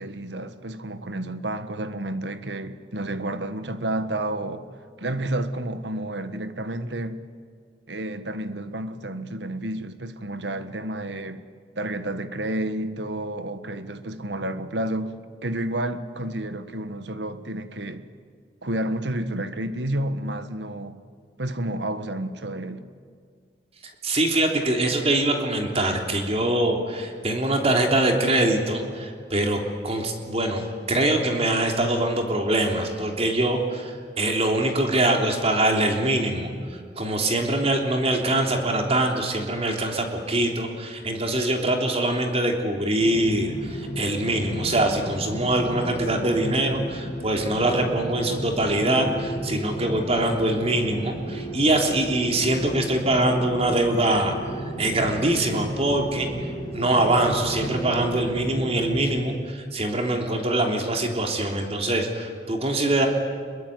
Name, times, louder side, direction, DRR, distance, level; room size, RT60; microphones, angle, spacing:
voice 1, 0.0-4.7 5.0-7.2 7.9-11.4 11.8-18.1 18.6-21.0 21.4-22.9, right 1 dB, 85° right, 1.6 m, -30 dB
voice 2, 23.8-56.3 56.7-63.1, right 1 dB, 35° right, 3.3 m, -23 dB
sound 1, 43.0-59.2, right 1 dB, 25° left, 4.4 m, -33 dB
26.0 x 23.0 x 9.4 m
head